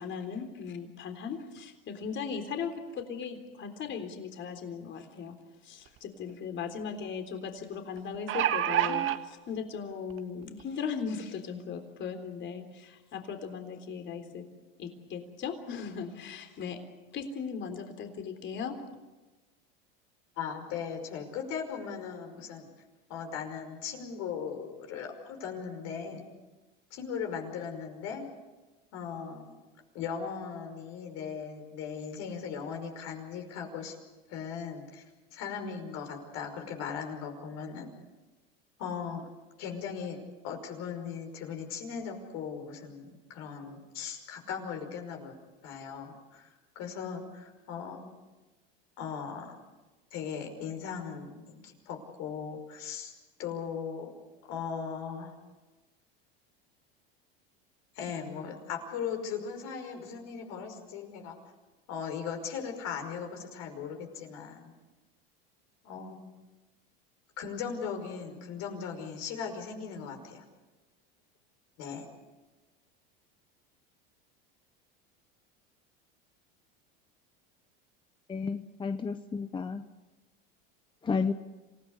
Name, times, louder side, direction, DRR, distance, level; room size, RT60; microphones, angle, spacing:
voice 1, 0.0-5.3 5.6-14.4 14.8-16.8 17.1-18.8, left 6 dB, 40° left, 7 dB, 3.7 m, -38 dB
Hand Sanitizer Dispenser, 5.9-6.0 6.3-6.4 8.0-9.2 10.1-10.2 10.6-10.7, right 11 dB, 45° right, 1.6 m, -27 dB
voice 2, 20.4-22.7 23.1-26.3 26.9-28.2 28.9-29.6 29.9-34.0 34.3-35.0 35.3-37.9 38.8-39.2 39.6-45.3 45.6-46.5 46.8-48.0 49.0-49.5 50.1-53.1 53.4-54.1 54.4-55.3 58.0-61.4 61.9-64.7 65.8-66.2 67.4-70.4 71.8-72.0, left 6 dB, 60° left, 4 dB, 5.5 m, -38 dB
voice 3, 78.3-79.8 81.0-81.3, left 5 dB, 15° left, 9 dB, 0.8 m, -31 dB
27.5 x 17.0 x 8.2 m, 1.2 s
supercardioid pair, 110°, 29 cm